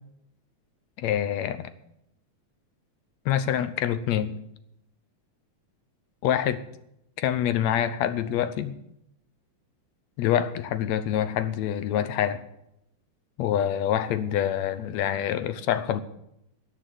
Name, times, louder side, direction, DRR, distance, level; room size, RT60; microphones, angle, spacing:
voice 1, 1.0-1.7 3.3-4.3 6.2-6.6 7.2-8.7 10.2-12.4 13.4-16.0, left 10 dB, 75° left, 13 dB, 2.0 m, -26 dB
13.0 x 8.4 x 7.7 m, 0.79 s
omnidirectional pair, 3.3 m